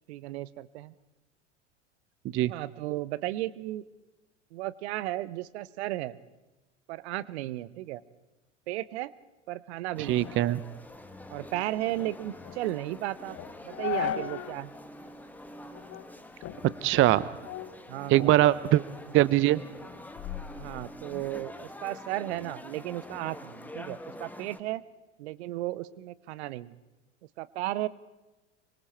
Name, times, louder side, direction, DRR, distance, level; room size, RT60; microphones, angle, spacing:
voice 1, 0.1-0.9 2.5-3.8 4.5-6.2 6.9-8.0 8.7-9.1 9.5-10.3 11.3-13.4 13.6-14.7 17.9-18.4 20.6-21.5 21.8-24.8 25.2-26.8 27.4-27.9, right 16 dB, 60° right, 18 dB, 0.9 m, -34 dB
sound 1, 9.9-24.6, left 1 dB, 5° left, 1.7 m, -46 dB
voice 2, 10.1-10.6 16.8-17.2 18.1-18.8 19.1-19.6, right 15 dB, 35° right, 18 dB, 0.7 m, -21 dB
sound 2, 10.2-14.6 15.0-15.1 15.7-16.1 16.4-18.5 18.9-21.3, left 9 dB, 40° left, 1.4 m, -39 dB
25.5 x 24.0 x 4.5 m, 1.1 s
hypercardioid pair, 85°, 36 cm